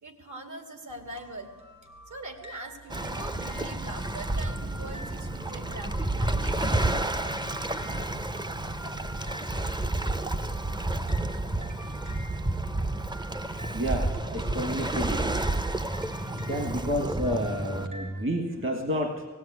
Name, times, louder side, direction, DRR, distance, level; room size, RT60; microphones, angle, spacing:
voice 1, 0.0-1.5 2.1-6.6, right 2 dB, 70° right, 5 dB, 2.5 m, -42 dB
sound 1, 0.9-18.2, right 1 dB, 85° right, 4.3 m, -47 dB
Waves surf, 2.9-17.9, right 2 dB, 15° right, 0.6 m, -30 dB
voice 2, 13.7-15.3 16.5-19.3, equal, 40° right, 5 dB, 1.6 m, -30 dB
17.5 x 17.0 x 9.6 m, 1.3 s
wide cardioid pair, 145°, 31 cm